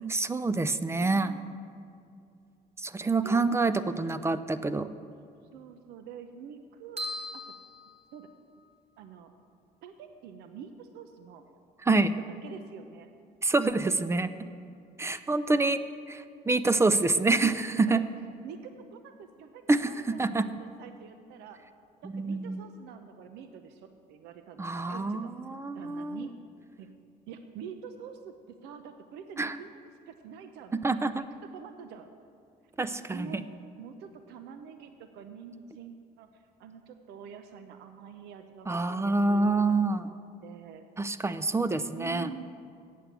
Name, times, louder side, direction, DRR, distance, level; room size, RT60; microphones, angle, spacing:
voice 1, 0.0-1.3 2.8-4.9 11.8-12.1 13.4-14.3 15.0-18.0 19.7-20.5 22.0-22.6 24.6-26.3 29.4-29.6 30.8-31.2 32.8-33.3 38.7-40.1 41.0-42.3, right 3 dB, 15° right, 13 dB, 0.4 m, -27 dB
voice 2, 1.0-1.4 3.2-3.5 5.5-7.0 7.3-7.4 8.1-8.3 9.0-9.3 9.8-11.4 11.9-13.1 15.3-15.4 16.9-17.0 17.9-18.0 18.4-21.6 22.0-25.3 25.7-26.3 26.8-26.9 27.3-29.8 30.1-31.3 31.5-32.1 33.1-33.5 33.8-40.8 41.9-42.4, right 7 dB, 85° right, 8 dB, 0.7 m, -46 dB
sound 1, 7.0-8.7, left 1 dB, 40° right, 1.6 m, -40 dB
8.2 x 7.6 x 8.2 m, 2.4 s
cardioid pair, 110°, 17 cm